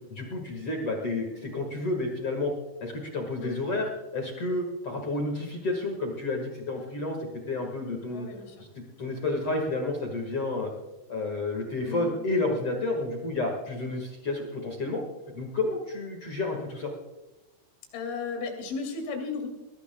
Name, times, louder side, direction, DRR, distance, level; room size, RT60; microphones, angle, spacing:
voice 1, 0.1-2.5 2.8-8.3 8.6-8.7 9.0-10.7 11.1-15.0 15.3-16.9, left 2 dB, 55° left, 2 dB, 1.7 m, -30 dB
voice 2, 8.1-8.6 11.8-12.2 17.9-19.5, left 4 dB, 85° left, 3 dB, 5.2 m, -34 dB
21.0 x 18.0 x 2.3 m, 1.0 s
omnidirectional pair, 5.4 m